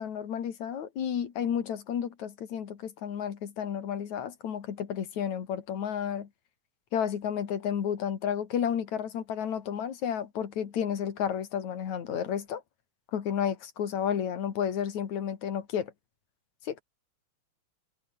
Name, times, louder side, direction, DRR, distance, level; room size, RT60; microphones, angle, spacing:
voice 1, 0.0-6.3 6.9-12.6 13.1-15.9 16.6-16.8, left 8 dB, 75° left, 3.6 m, -32 dB
omnidirectional pair, 3.4 m